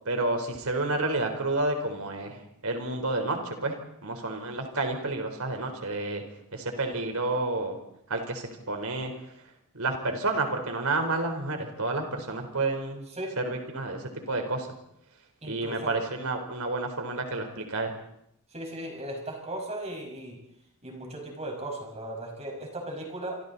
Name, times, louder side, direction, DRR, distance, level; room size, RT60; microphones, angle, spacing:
voice 1, 0.1-2.4 2.6-3.7 4.0-6.2 6.5-7.8 8.1-9.1 9.7-13.0 13.4-14.7 15.4-17.9, right 2 dB, 70° right, 4 dB, 4.2 m, -30 dB
voice 2, 13.1-13.4 15.4-16.0 18.5-20.4 20.8-23.4, right 1 dB, 30° right, 1 dB, 5.8 m, -37 dB
27.5 x 26.5 x 4.2 m, 0.76 s
head